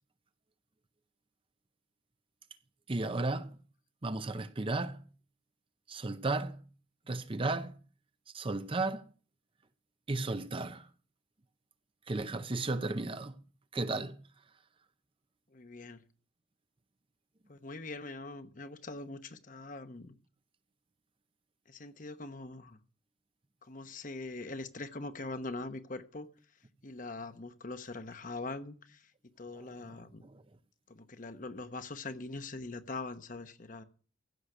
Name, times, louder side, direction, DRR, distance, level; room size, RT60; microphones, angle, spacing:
voice 1, 2.9-3.6 4.0-5.0 5.9-6.6 7.1-7.7 8.3-9.1 10.1-10.9 12.1-13.3 13.7-14.2 30.2-30.3, right 2 dB, 30° right, 0.6 m, -34 dB
voice 2, 15.5-16.0 17.5-20.2 21.7-22.8 23.6-26.3 26.8-29.1 29.4-30.2 30.9-33.8, left 3 dB, 45° left, 1.0 m, -42 dB
15.5 x 6.5 x 6.5 m
head